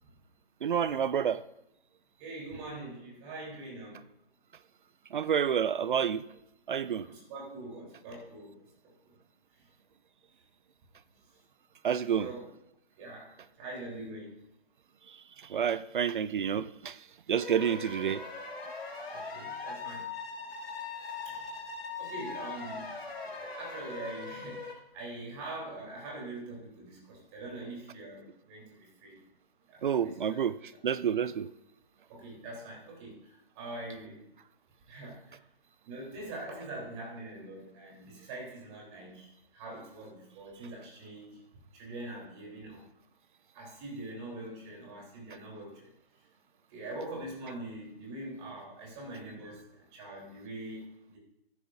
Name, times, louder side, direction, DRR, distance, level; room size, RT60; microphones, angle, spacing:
voice 1, 0.6-1.4 5.1-6.2 6.7-7.1 11.8-12.3 15.5-17.0 17.3-18.2 29.8-30.6 30.8-31.5, right 8 dB, 55° right, 16 dB, 0.4 m, -29 dB
voice 2, 2.2-4.0 7.0-9.1 9.6-9.7 12.2-12.5 13.0-14.3 17.5-17.7 19.1-20.1 21.2-21.5 22.0-23.0 23.2-29.2 29.7-30.4 32.1-34.3 34.9-35.4 35.9-41.4 41.7-42.9 43.5-45.9 46.7-50.8 51.1-51.2, right 2 dB, 25° right, -3 dB, 3.7 m, -43 dB
sound 1, 17.4-24.7, left 4 dB, 75° left, 3.6 m, -40 dB
13.5 x 10.5 x 2.6 m, 0.83 s
figure-of-eight pair, 145°, 31 cm